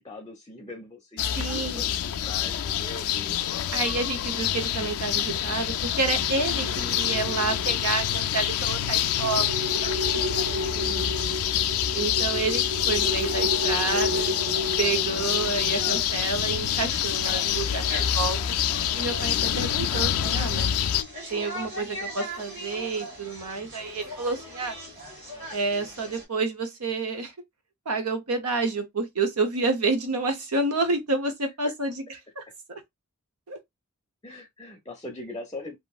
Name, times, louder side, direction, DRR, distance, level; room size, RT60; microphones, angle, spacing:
voice 1, 0.0-4.1 10.6-11.1 13.2-13.4 13.9-14.0 31.6-31.7 32.5-32.6 34.2-35.8, left 2 dB, 15° left, 0.6 m, -42 dB
sound 1, 1.2-21.0, left 10 dB, 75° left, 0.3 m, -27 dB
voice 2, 1.4-1.8 3.7-9.5 11.9-14.3 14.8-18.6 18.9-20.7 21.3-24.8 25.5-27.3 27.9-32.0 32.4-32.5 32.7-32.8 33.5-33.6, right 3 dB, 80° right, 0.8 m, -29 dB
sound 2, 6.1-16.0, equal, 55° right, 0.5 m, -33 dB
sound 3, 9.8-26.2, equal, 30° right, 1.7 m, -42 dB
2.9 x 2.5 x 2.3 m
head